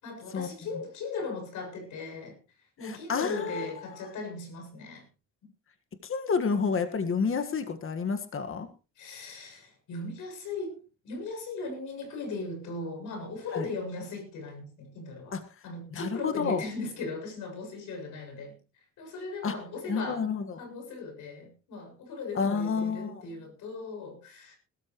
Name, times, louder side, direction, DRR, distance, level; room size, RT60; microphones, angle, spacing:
voice 1, 0.0-2.4 2.8-5.0 9.0-15.4 15.6-18.6 19.0-20.2 20.6-24.6, left 3 dB, 80° left, 7.2 m, -38 dB
voice 2, 2.8-4.0 6.0-8.7 13.5-13.7 15.3-15.4 15.9-16.6 19.4-19.5 19.9-20.6 22.3-23.2, left 5 dB, 45° left, 1.7 m, -30 dB
21.0 x 13.5 x 3.1 m
cardioid pair, 90°, 30 cm